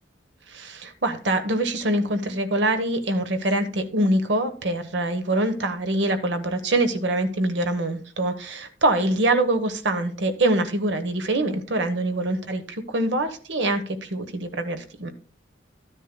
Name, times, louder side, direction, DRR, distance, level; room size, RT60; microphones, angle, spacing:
voice 1, 0.5-15.1, right 1 dB, 75° right, 8 dB, 1.1 m, -24 dB
13.5 x 10.0 x 2.2 m, 0.40 s
head